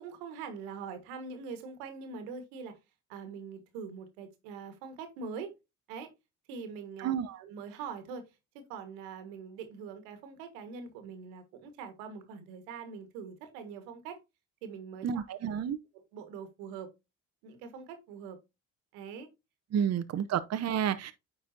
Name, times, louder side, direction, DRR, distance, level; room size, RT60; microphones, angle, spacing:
voice 1, 0.0-2.8 3.1-5.5 5.9-6.1 6.5-8.2 8.7-14.2 14.6-15.2 15.9-16.9 17.4-18.4 18.9-19.3 19.7-19.9, right 5 dB, 85° right, 1.5 m, -43 dB
voice 2, 7.0-7.4 15.0-15.8 19.7-21.1, right 8 dB, 40° right, 0.7 m, -30 dB
9.2 x 4.1 x 2.6 m
hypercardioid pair, 60°, 38 cm